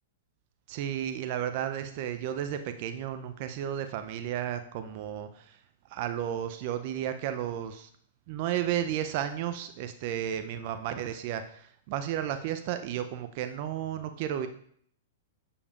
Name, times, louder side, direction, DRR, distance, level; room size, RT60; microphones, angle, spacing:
voice 1, 0.7-5.6 5.9-7.9 8.3-14.5, right 10 dB, 50° right, 9 dB, 0.5 m, -33 dB
6.9 x 6.8 x 2.4 m, 0.63 s
hypercardioid pair, 115°, 0 cm